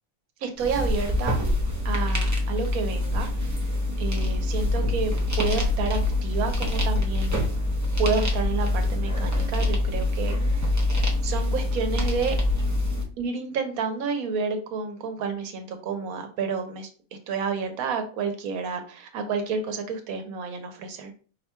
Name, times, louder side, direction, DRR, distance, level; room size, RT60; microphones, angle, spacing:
voice 1, 0.4-1.4 1.8-3.6 4.0-7.4 8.0-10.6 11.2-12.4 13.2-16.9 17.3-21.1, right 5 dB, 90° right, 6 dB, 1.2 m, -30 dB
sound 1, 0.6-13.0, left 2 dB, 25° right, 0.4 m, -25 dB
4.5 x 4.3 x 2.2 m, 0.41 s
omnidirectional pair, 1.5 m